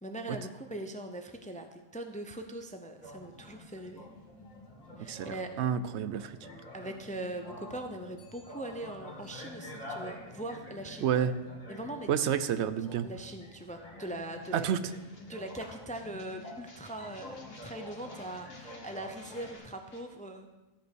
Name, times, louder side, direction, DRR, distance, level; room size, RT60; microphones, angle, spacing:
voice 1, 0.0-4.1 5.0-5.5 6.7-11.1 11.7-12.1 13.0-14.7 15.3-20.5, right 1 dB, 10° left, 6 dB, 0.5 m, -41 dB
sound 1, 3.0-19.6, left 1 dB, 35° left, 2.1 m, -48 dB
voice 2, 5.0-6.4 11.0-11.3 12.1-13.1 14.5-14.8, right 8 dB, 75° right, 13 dB, 0.9 m, -30 dB
sound 2, 14.4-20.0, left 2 dB, 60° left, 1.7 m, -56 dB
13.5 x 5.3 x 6.2 m, 1.1 s
omnidirectional pair, 1.2 m